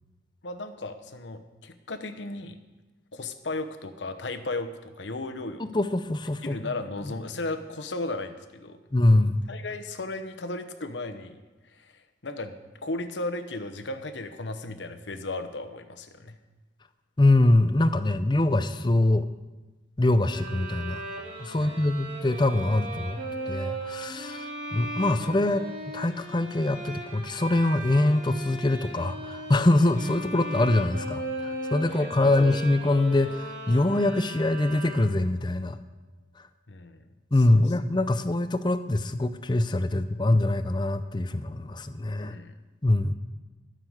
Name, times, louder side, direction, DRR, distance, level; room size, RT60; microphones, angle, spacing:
voice 1, 0.4-2.6 3.1-5.6 6.4-8.8 9.5-11.4 11.7-16.4 21.5-21.8 32.0-32.5 36.7-37.1 37.5-37.6 42.2-42.5, left 2 dB, 85° left, 7 dB, 1.0 m, -35 dB
voice 2, 5.6-6.7 7.0-7.1 8.9-9.5 17.2-19.3 20.0-21.0 21.4-23.2 23.5-25.7 25.9-35.8 37.3-42.4 42.8-43.1, left 2 dB, 25° left, 11 dB, 0.5 m, -24 dB
sound 1, 20.2-35.4, right 1 dB, 50° right, 3.3 m, -37 dB
13.0 x 6.7 x 7.9 m, 1.2 s
head